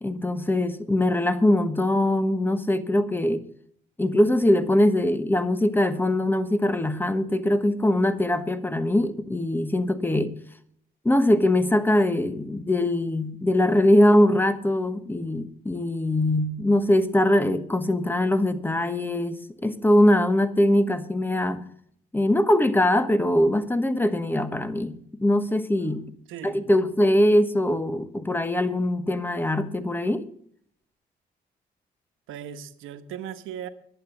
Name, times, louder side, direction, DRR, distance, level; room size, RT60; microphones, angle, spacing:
voice 1, 0.0-3.4 4.0-10.3 11.0-21.6 22.1-26.0 26.4-30.2, left 1 dB, 10° left, 1.1 m, -22 dB
voice 2, 26.3-26.6 32.3-33.7, right 9 dB, 90° right, 1.1 m, -37 dB
11.0 x 8.8 x 7.0 m
cardioid pair, 90°, 20 cm